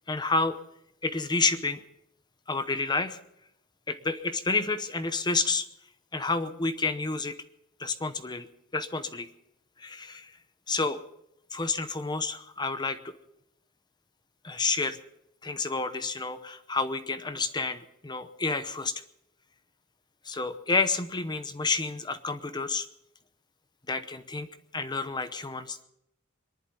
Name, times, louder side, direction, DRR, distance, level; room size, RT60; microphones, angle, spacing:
voice 1, 0.1-0.6 1.0-1.8 2.5-3.2 3.9-5.7 6.1-7.4 7.8-8.5 8.7-9.3 9.8-10.3 10.7-11.0 11.5-13.1 14.4-15.0 15.4-18.9 20.2-22.9 23.9-24.5 24.7-25.8, left 3 dB, 20° left, 10 dB, 0.8 m, -29 dB
23.5 x 11.0 x 5.5 m, 0.79 s
head